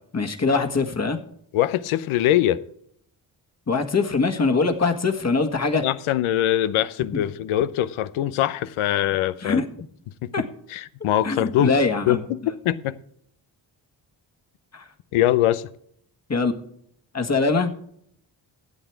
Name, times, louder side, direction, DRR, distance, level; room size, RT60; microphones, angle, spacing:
voice 1, 0.1-1.2 3.7-5.9 7.1-7.2 9.4-9.7 10.3-10.4 11.2-12.2 14.7-14.8 16.3-16.5 17.1-17.7, left 4 dB, 30° left, 1.7 m, -22 dB
voice 2, 1.5-2.6 5.8-9.6 10.2-10.3 10.7-11.8 12.1-12.4 12.6-13.0 15.1-15.7, left 13 dB, 85° left, 0.7 m, -22 dB
13.0 x 8.2 x 4.6 m
supercardioid pair, 55°, 48 cm